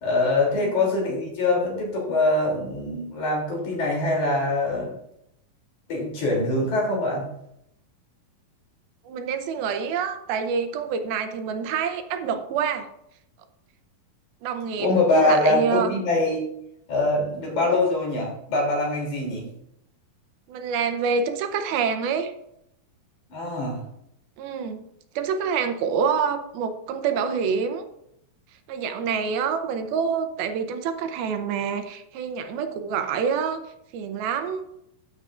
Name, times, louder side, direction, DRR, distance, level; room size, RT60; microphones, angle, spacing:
voice 1, 0.0-5.0 5.9-7.3 14.8-16.4 16.9-19.5 23.3-23.8, left 2 dB, 55° left, -2 dB, 4.3 m, -23 dB
voice 2, 0.5-0.9 9.1-12.9 14.4-16.0 17.6-17.8 20.5-22.3 24.4-24.9 25.2-27.9 28.7-33.6 33.9-34.6, right 6 dB, 80° right, 8 dB, 2.7 m, -27 dB
12.5 x 8.8 x 2.5 m, 0.77 s
omnidirectional pair, 4.3 m